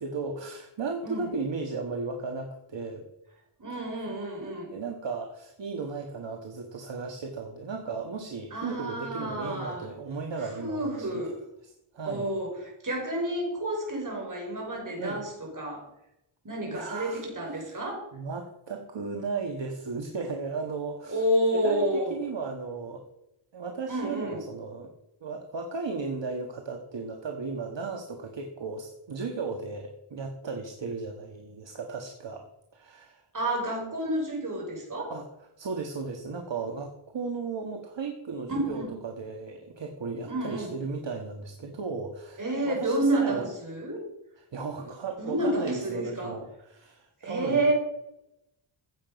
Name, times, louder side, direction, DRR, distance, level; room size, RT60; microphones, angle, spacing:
voice 1, 0.0-3.1 4.7-11.2 11.6-12.3 15.0-15.2 16.7-17.2 17.5-17.8 18.1-21.2 21.5-23.0 23.5-24.9 25.2-32.5 32.7-33.2 35.1-35.3 35.6-43.5 44.4-47.6, right 4 dB, 60° right, 3 dB, 1.6 m, -35 dB
voice 2, 3.6-4.7 8.5-9.9 10.4-11.4 12.0-15.8 16.4-18.1 21.1-22.1 23.9-24.4 33.3-35.1 38.5-38.9 40.2-40.7 42.4-44.1 45.2-46.4 47.2-47.7, right 1 dB, 40° right, 0 dB, 5.1 m, -30 dB
15.5 x 7.6 x 5.2 m, 0.85 s
wide cardioid pair, 95°, 50 cm